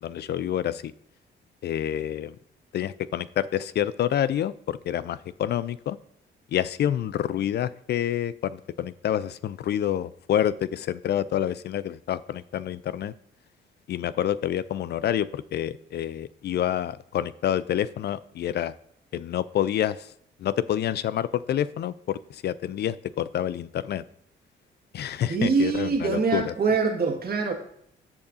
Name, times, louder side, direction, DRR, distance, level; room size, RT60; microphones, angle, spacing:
voice 1, 0.0-0.9 1.6-2.4 2.7-6.0 6.5-13.1 13.9-18.7 19.1-20.1 20.4-24.0 24.9-26.5, left 11 dB, 55° left, 17 dB, 0.4 m, -28 dB
voice 2, 25.3-27.5, right 4 dB, 50° right, 2 dB, 1.8 m, -24 dB
13.5 x 5.5 x 2.6 m, 0.71 s
cardioid pair, 90°, 20 cm